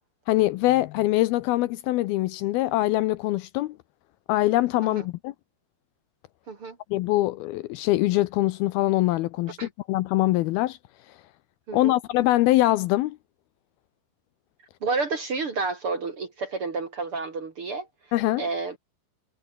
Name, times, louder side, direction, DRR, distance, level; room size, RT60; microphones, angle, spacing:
voice 1, 0.3-3.8 4.3-5.3 6.9-10.8 11.1-11.2 11.7-13.2 18.1-18.4, left 17 dB, 80° left, 2.4 m, -23 dB
voice 2, 14.8-17.9 18.4-18.8, right 4 dB, 40° right, 2.3 m, -30 dB
omnidirectional pair, 4.8 m